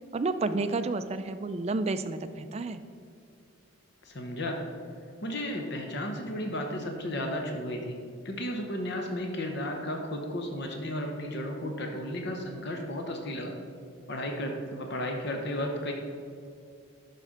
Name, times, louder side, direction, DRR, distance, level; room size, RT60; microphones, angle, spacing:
voice 1, 0.1-2.8, right 3 dB, 30° right, 9 dB, 0.3 m, -30 dB
voice 2, 4.0-4.6 5.2-8.0 8.2-13.6 14.1-15.9, left 1 dB, 50° left, 3 dB, 0.8 m, -33 dB
11.5 x 4.3 x 5.0 m, 2.3 s
head